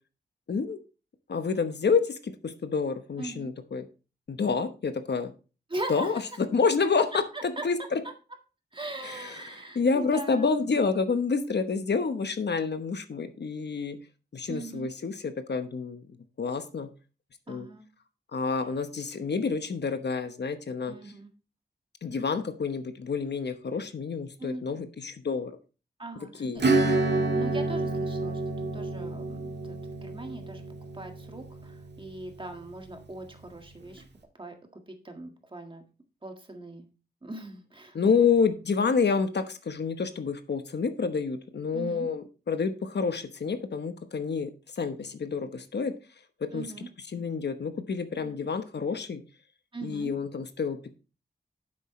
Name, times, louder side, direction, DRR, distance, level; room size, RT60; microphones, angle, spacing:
voice 1, 0.5-0.8 1.3-3.9 4.3-5.3 5.9-6.2 6.5-8.0 9.0-14.0 14.3-16.1 16.4-16.9 17.5-17.7 18.3-21.0 22.0-25.5 26.3-26.7 37.9-45.9 46.4-46.7 47.1-49.2 49.8-50.9, left 5 dB, 75° left, 9 dB, 1.0 m, -28 dB
voice 2, 3.2-3.5 5.7-6.1 7.3-7.6 8.7-10.6 14.5-14.9 17.5-17.8 20.9-21.3 24.4-24.6 26.0-26.6 27.1-28.4 28.7-29.8 30.0-30.6 30.9-34.0 34.4-34.6 35.0-35.8 36.2-36.9 37.2-38.3 41.7-42.1 46.5-46.9 48.2-48.4 49.7-50.1, right 2 dB, 30° right, 4 dB, 1.8 m, -40 dB
Acoustic guitar / Strum, 26.6-32.8, right 2 dB, 85° right, 1.7 m, -29 dB
10.0 x 7.6 x 3.2 m, 0.33 s
wide cardioid pair, 110°, 18 cm